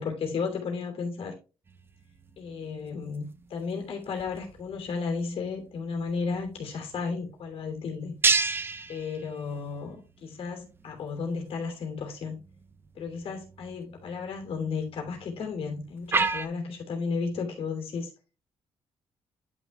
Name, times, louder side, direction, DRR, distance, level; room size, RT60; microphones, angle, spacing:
voice 1, 0.0-1.3 2.4-3.2 3.5-8.1 8.9-12.4 12.9-18.1, left 5 dB, 70° left, 2.9 m, -33 dB
sound 1, 1.7-16.5, right 4 dB, 20° right, 0.5 m, -35 dB
10.5 x 6.4 x 2.3 m
cardioid pair, 160°, 10 cm